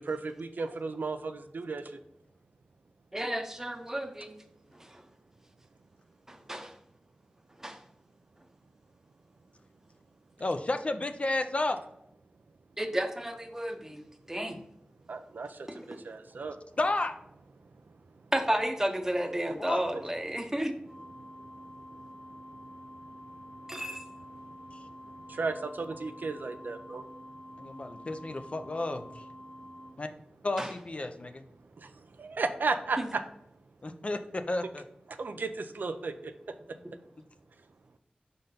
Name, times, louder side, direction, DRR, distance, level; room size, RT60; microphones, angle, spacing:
voice 1, 0.0-2.0 15.1-16.7 17.6-17.7 21.2-23.8 24.3-27.6 31.8-33.2 35.1-36.3, right 4 dB, 80° right, 8 dB, 0.5 m, -36 dB
voice 2, 3.1-4.3 4.8-5.0 6.3-6.7 7.6-7.8 12.8-14.6 15.7-16.0 18.3-20.7 23.7-24.0 30.6-30.7 33.0-33.1, right 1 dB, 15° right, 6 dB, 0.8 m, -32 dB
voice 3, 10.4-11.8 16.8-17.2 19.6-19.8 24.7-24.8 27.6-29.2 30.0-30.1 30.4-31.4 33.8-34.8, left 2 dB, 40° left, 7 dB, 0.5 m, -32 dB
sound 1, 20.9-29.9, equal, 10° left, 1.2 m, -48 dB
5.2 x 3.8 x 5.7 m, 0.77 s
wide cardioid pair, 85°, 3 cm